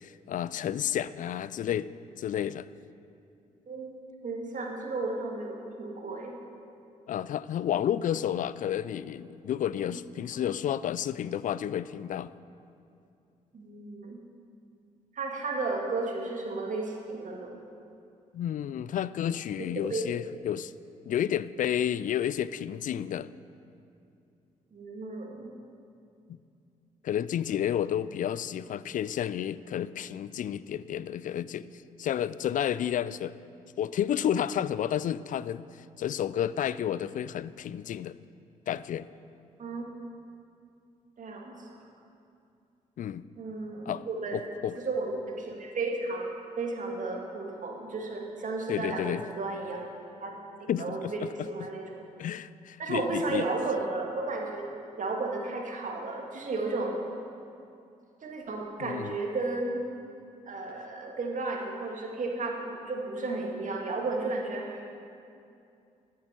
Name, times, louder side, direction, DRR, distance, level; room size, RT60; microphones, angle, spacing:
voice 1, 0.0-1.9 2.2-2.7 7.1-12.3 18.3-20.7 21.1-23.3 26.3-26.4 27.0-31.7 32.0-33.3 33.8-35.6 36.0-38.2 38.7-39.1 43.0-43.2 43.9-44.1 44.3-44.7 48.7-49.2 50.7-51.3 52.2-53.4 58.8-59.1, left 10 dB, 45° left, 17 dB, 0.4 m, -31 dB
voice 2, 3.7-4.0 4.2-6.4 9.9-10.0 13.5-14.2 15.1-17.6 19.9-20.0 24.7-25.5 39.6-39.9 41.2-41.8 43.4-44.4 44.8-46.3 46.6-49.8 50.2-51.9 52.8-54.6 55.0-56.9 58.2-59.8 60.5-64.9, right 3 dB, 45° right, 0 dB, 2.1 m, -33 dB
14.0 x 8.4 x 4.5 m, 2.6 s
figure-of-eight pair, 40°, 18 cm